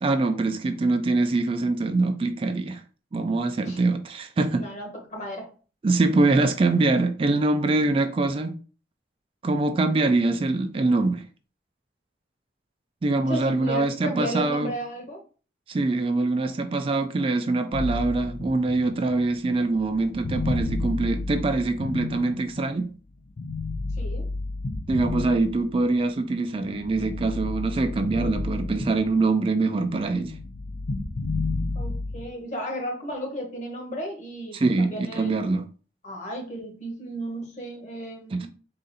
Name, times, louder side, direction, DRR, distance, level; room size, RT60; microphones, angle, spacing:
voice 1, 0.0-2.8 3.1-4.6 5.8-8.5 9.4-11.2 13.0-14.7 15.7-22.9 24.9-30.3 34.5-35.7 38.3-38.5, right 3 dB, 30° right, 0.3 m, -24 dB
voice 2, 4.5-5.5 13.3-15.2 24.0-24.3 31.7-35.5 36.0-38.5, equal, 40° left, 1.1 m, -34 dB
sound 1, 17.7-22.8 23.4-26.0 26.5-29.4 29.6-32.3, left 3 dB, 65° left, 0.5 m, -32 dB
3.8 x 2.5 x 4.0 m
head